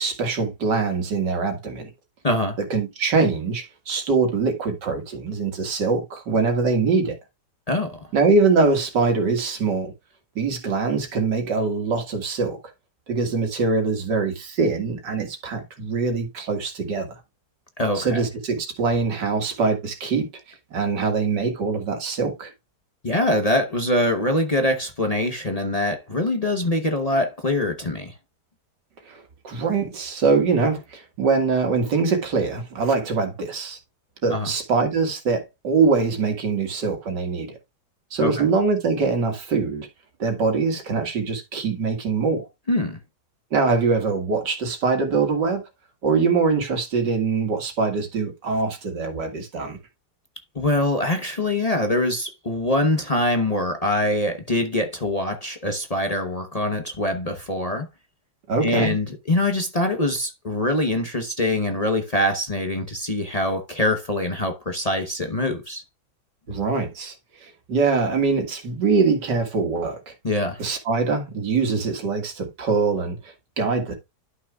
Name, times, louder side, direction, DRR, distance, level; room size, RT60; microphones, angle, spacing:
voice 1, 0.0-1.9 2.7-7.2 8.1-9.9 10.4-12.6 13.1-17.2 18.0-22.5 29.1-33.8 34.2-37.6 38.1-39.9 40.2-42.5 43.5-45.6 46.0-49.8 58.5-58.9 66.5-67.2 67.4-70.1 70.6-73.9, right 4 dB, 90° right, 2.5 m, -23 dB
voice 2, 2.2-2.6 7.7-8.0 17.8-18.2 23.0-28.1 34.3-34.5 38.2-38.4 42.7-43.0 50.5-57.9 58.6-65.8 70.2-70.6, left 1 dB, 30° left, 0.9 m, -24 dB
11.5 x 6.0 x 2.3 m
omnidirectional pair, 1.8 m